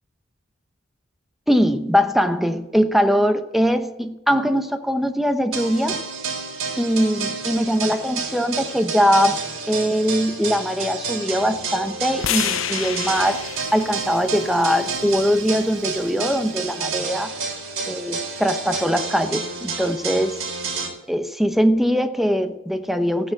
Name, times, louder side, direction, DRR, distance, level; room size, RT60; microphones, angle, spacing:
voice 1, 1.5-6.0 6.8-9.4 9.7-13.4 13.7-17.3 17.9-20.4 21.1-23.3, equal, ahead, 0.8 m, -21 dB
sound 1, 5.5-20.9, right 4 dB, 85° right, 3.7 m, -30 dB
sound 2, 12.2-16.4, left 10 dB, 75° left, 0.6 m, -31 dB
15.0 x 9.4 x 7.6 m
head